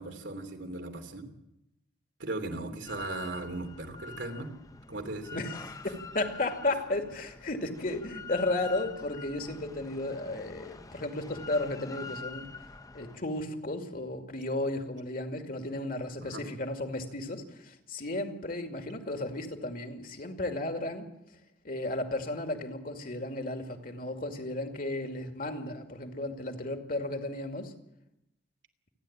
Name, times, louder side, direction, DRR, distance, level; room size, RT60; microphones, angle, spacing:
voice 1, 0.0-1.3 2.2-4.5 4.9-5.4 16.2-16.4, right 2 dB, 85° right, 4 dB, 3.0 m, -37 dB
Drill, 2.9-13.2, left 4 dB, 20° left, 0.7 m, -45 dB
voice 2, 5.3-12.5 12.9-21.1 21.6-27.7, left 2 dB, 50° left, 6 dB, 2.5 m, -34 dB
28.5 x 10.5 x 8.8 m, 0.86 s
head